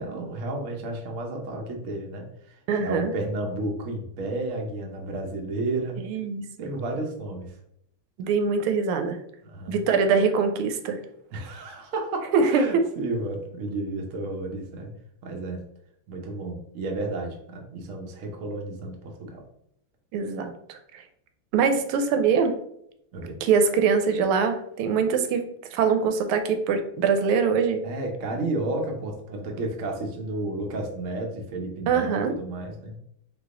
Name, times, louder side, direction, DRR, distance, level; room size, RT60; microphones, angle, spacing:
voice 1, 0.0-6.0 6.6-7.6 9.4-9.8 11.3-14.9 15.2-15.6 16.1-19.4 23.1-23.4 27.8-33.0, right 2 dB, 70° right, 2 dB, 0.7 m, -32 dB
voice 2, 2.7-3.1 6.0-6.7 8.2-9.2 9.7-11.0 12.3-12.6 20.1-21.0 21.5-22.5 23.4-25.4 25.7-27.8 31.9-32.3, right 5 dB, 85° right, 7 dB, 1.5 m, -23 dB
3.9 x 3.0 x 3.7 m, 0.73 s
omnidirectional pair, 2.4 m